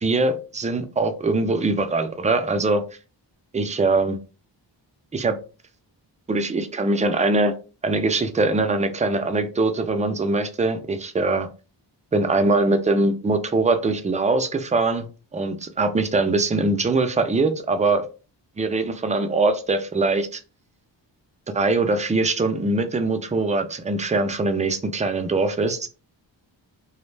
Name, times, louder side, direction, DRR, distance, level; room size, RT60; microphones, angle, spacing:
voice 1, 0.0-2.8 3.5-4.2 5.1-5.3 6.3-7.5 7.8-11.5 12.1-15.1 15.3-18.1 18.6-20.4 21.5-25.9, right 3 dB, 15° right, 7 dB, 0.3 m, -22 dB
2.3 x 2.1 x 3.1 m, 0.33 s
cardioid pair, 75°, 45 cm